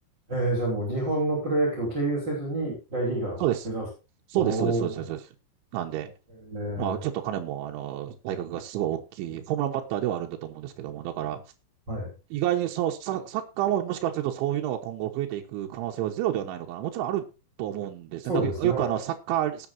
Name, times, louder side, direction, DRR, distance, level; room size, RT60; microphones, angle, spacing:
voice 1, 0.3-3.8 4.3-4.9 6.4-7.0 11.9-12.1 18.3-18.9, right 1 dB, 25° right, -2 dB, 4.9 m, -28 dB
voice 2, 4.3-5.2 5.7-6.1 6.8-11.4 12.3-17.3 17.6-19.7, right 12 dB, 85° right, 2 dB, 3.6 m, -29 dB
19.0 x 8.6 x 2.7 m, 0.30 s
omnidirectional pair, 5.3 m